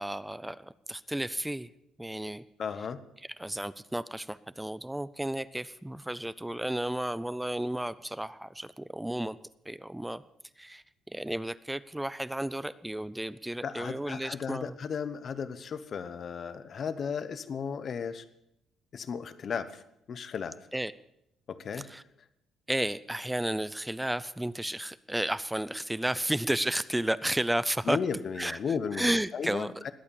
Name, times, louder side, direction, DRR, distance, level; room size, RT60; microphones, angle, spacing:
voice 1, 0.0-1.7 2.0-2.4 3.4-9.4 9.7-10.2 10.6-14.8 20.7-20.9 21.7-22.0 22.7-28.0 28.4-28.6 28.9-29.8, right 1 dB, 5° right, 17 dB, 0.5 m, -32 dB
voice 2, 2.6-3.0 13.6-18.2 18.9-19.8 20.1-20.6 21.5-21.9 27.9-29.9, left 6 dB, 40° left, 13 dB, 1.0 m, -35 dB
20.5 x 8.6 x 7.0 m, 0.80 s
cardioid pair, 135°, 0 cm